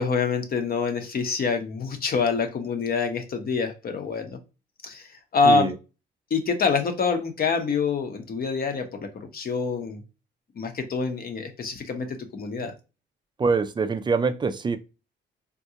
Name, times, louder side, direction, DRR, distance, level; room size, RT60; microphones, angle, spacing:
voice 1, 0.0-4.4 4.8-5.7 6.3-10.0 10.6-12.7, left 4 dB, 50° left, 0.8 m, -26 dB
voice 2, 13.4-14.8, right 4 dB, 25° right, 0.3 m, -24 dB
3.6 x 2.3 x 2.7 m
cardioid pair, 90°, 20 cm